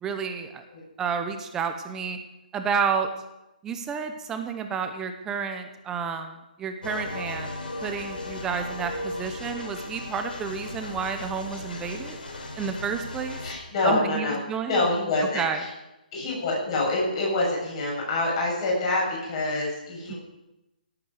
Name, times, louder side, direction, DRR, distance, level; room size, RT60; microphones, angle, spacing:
voice 1, 0.0-0.6 1.0-2.2 2.5-3.1 3.6-7.5 7.8-12.2 12.6-13.4 13.8-14.8 15.3-15.6 20.1-20.2, right 6 dB, 10° right, 6 dB, 0.8 m, -30 dB
sound 1, 6.8-13.5, left 2 dB, 75° left, 4.7 m, -36 dB
voice 2, 13.4-14.4 14.7-15.7 16.1-20.2, left 2 dB, 35° left, -2 dB, 7.1 m, -26 dB
17.5 x 8.7 x 6.6 m, 0.95 s
hypercardioid pair, 165°, 5 cm